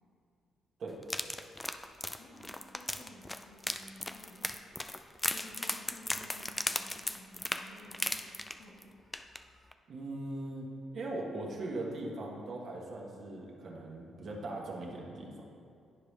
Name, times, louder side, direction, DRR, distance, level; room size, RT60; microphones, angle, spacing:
sound 1, 1.0-8.8 9.1-9.4 9.7-9.8, left 1 dB, 10° left, 0.3 m, -37 dB
voice 1, 2.2-4.6 5.3-8.3 8.6-8.9, left 1 dB, 75° left, -2 dB, 1.4 m, -54 dB
voice 2, 9.9-10.6 10.9-15.4, right 2 dB, 55° right, -2 dB, 1.3 m, -40 dB
10.0 x 4.9 x 3.3 m, 2.4 s
cardioid pair, 90°, 0 cm